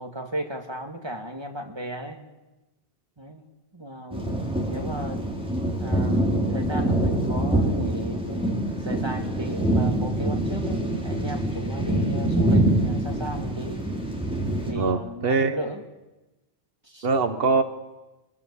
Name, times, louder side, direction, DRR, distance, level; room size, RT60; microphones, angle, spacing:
voice 1, 0.0-2.2 3.2-3.5 3.7-5.2 5.8-13.9 14.7-15.8 16.8-17.1, right 1 dB, 25° right, 4 dB, 2.4 m, -35 dB
sound 1, 4.1-14.7, right 1 dB, 5° right, 4.1 m, -25 dB
voice 2, 14.8-15.6 17.0-17.6, right 4 dB, 65° right, 8 dB, 1.5 m, -23 dB
22.5 x 22.0 x 8.5 m, 1.0 s
omnidirectional pair, 1.0 m